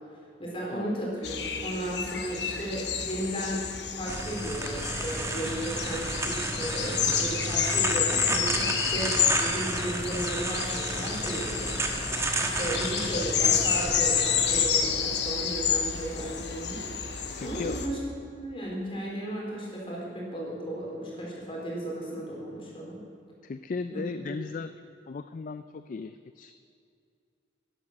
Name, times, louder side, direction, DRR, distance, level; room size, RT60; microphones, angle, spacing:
voice 1, 0.4-1.3 1.6-3.6 3.9-11.7 12.0-16.9 17.4-23.0 23.9-24.1, right 1 dB, 30° left, -4 dB, 3.8 m, -35 dB
sound 1, 1.2-17.9, left 7 dB, 70° left, 1.2 m, -30 dB
sound 2, 4.1-14.7, right 2 dB, 15° right, 1.2 m, -32 dB
voice 2, 17.4-17.8 23.4-24.7 25.1-26.5, left 4 dB, 45° left, 10 dB, 0.4 m, -36 dB
11.5 x 11.0 x 6.5 m, 2.4 s
head